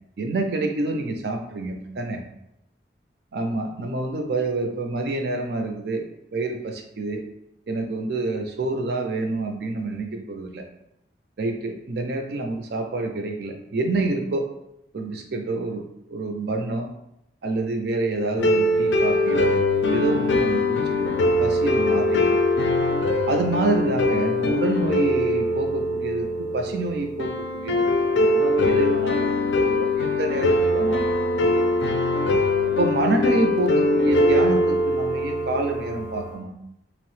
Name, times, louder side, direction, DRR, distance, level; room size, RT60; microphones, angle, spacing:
voice 1, 0.2-2.2 3.3-6.0 6.3-7.2 7.7-10.6 11.4-14.5 14.9-16.9 17.4-19.5 19.9-22.4 23.3-26.3 26.5-29.3 29.6-31.2 31.4-31.7 32.7-36.5, right 2 dB, 65° right, 4 dB, 0.4 m, -27 dB
sound 1, 18.4-36.4, left 2 dB, 80° left, 0.4 m, -22 dB
2.9 x 2.0 x 3.1 m, 0.79 s
head